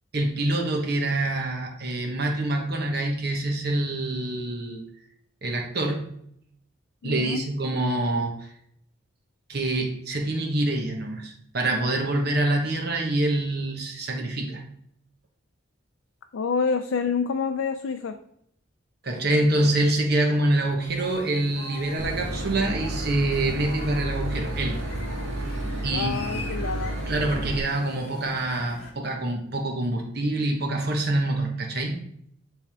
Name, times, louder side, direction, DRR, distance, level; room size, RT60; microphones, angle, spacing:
voice 1, 0.1-4.8 5.4-6.0 7.0-8.5 9.5-14.6 19.0-24.8 25.8-26.5 27.1-32.0, right 1 dB, 50° right, 1 dB, 1.2 m, -26 dB
voice 2, 7.0-7.4 16.3-18.2 25.9-26.9, left 5 dB, 75° left, 6 dB, 0.4 m, -27 dB
sound 1, 20.8-28.9, left 2 dB, 35° left, 1.3 m, -43 dB
Boat Water vehicle / Engine, 22.0-27.6, right 1 dB, 80° right, 1.1 m, -31 dB
10.5 x 3.5 x 3.5 m, 0.70 s
head